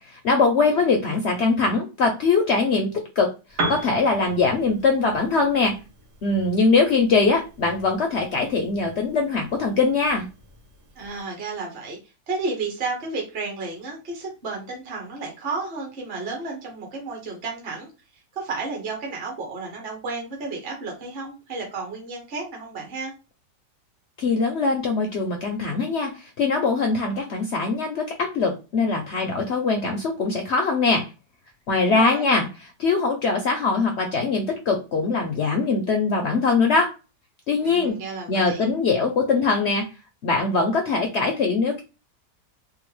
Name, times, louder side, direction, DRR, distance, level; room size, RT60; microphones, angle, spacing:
voice 1, 0.1-3.3 3.7-5.7 6.2-10.3 24.2-31.1 31.7-32.5 32.8-36.9 37.5-38.0 38.3-39.9 40.2-41.8, left 4 dB, 70° left, 2 dB, 0.6 m, -22 dB
Piano, 3.5-11.3, right 2 dB, 60° right, 1.2 m, -37 dB
voice 2, 11.0-12.0 12.3-17.9 18.4-23.1 31.7-32.3 37.6-38.7, right 3 dB, 45° right, -1 dB, 0.9 m, -32 dB
3.7 x 2.0 x 3.1 m, 0.29 s
omnidirectional pair, 1.8 m